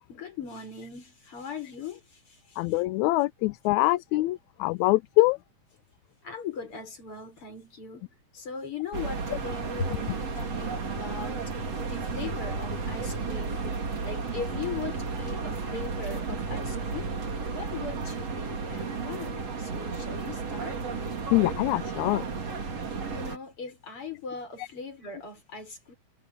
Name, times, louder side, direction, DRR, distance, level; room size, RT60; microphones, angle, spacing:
voice 1, 0.1-2.6 6.2-17.1 17.5-20.8 23.1-25.9, left 5 dB, 45° left, 6.0 m, -39 dB
voice 2, 2.6-5.4 21.3-22.3 24.6-24.7, left 20 dB, 80° left, 1.8 m, -24 dB
sound 1, 8.9-23.4, right 4 dB, 55° right, 4.4 m, -33 dB
omnidirectional pair, 3.5 m